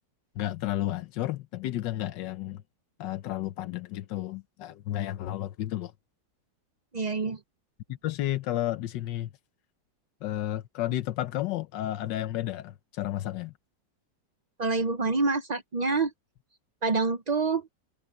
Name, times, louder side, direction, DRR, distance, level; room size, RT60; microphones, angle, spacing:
voice 1, 0.3-2.6 3.0-5.9 8.0-9.3 10.2-13.5, left 14 dB, 85° left, 1.5 m, -32 dB
voice 2, 6.9-7.4 14.6-16.1 16.8-17.7, right 3 dB, 90° right, 0.3 m, -27 dB
omnidirectional pair, 1.9 m